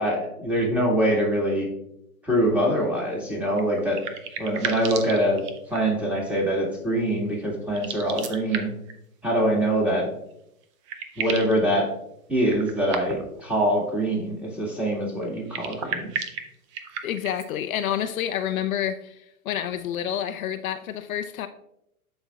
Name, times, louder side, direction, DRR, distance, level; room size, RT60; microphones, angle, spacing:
voice 1, 0.0-1.7 2.2-4.0 4.4-8.7 9.2-10.1 11.2-11.9 12.3-16.1, right 1 dB, 5° right, 1.9 m, -24 dB
sound 1, 3.5-6.0 7.7-8.9 10.3-10.4 10.6-11.6 12.4-13.4 15.3-17.5, right 7 dB, 25° right, 0.3 m, -34 dB
voice 2, 17.0-21.5, left 10 dB, 70° left, 0.6 m, -29 dB
11.5 x 4.4 x 2.3 m
hypercardioid pair, 115°, 44 cm